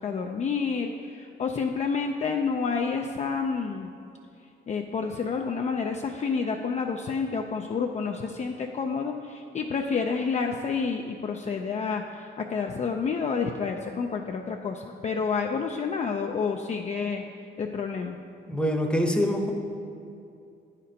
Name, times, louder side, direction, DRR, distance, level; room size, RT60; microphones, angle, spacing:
voice 1, 0.0-3.9 4.7-17.3 17.6-18.2, left 5 dB, 35° left, 2 dB, 0.4 m, -29 dB
voice 2, 18.5-19.5, equal, 5° left, 2 dB, 0.8 m, -25 dB
8.9 x 4.3 x 5.1 m, 2.5 s
cardioid pair, 90°, 20 cm